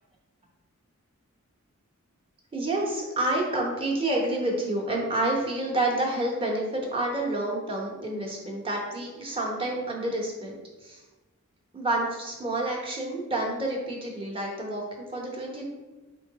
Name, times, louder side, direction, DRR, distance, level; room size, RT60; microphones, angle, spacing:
voice 1, 2.5-10.5 10.8-11.0 11.7-15.7, right 1 dB, 25° right, -2 dB, 0.8 m, -29 dB
3.7 x 3.1 x 4.0 m, 1.2 s
head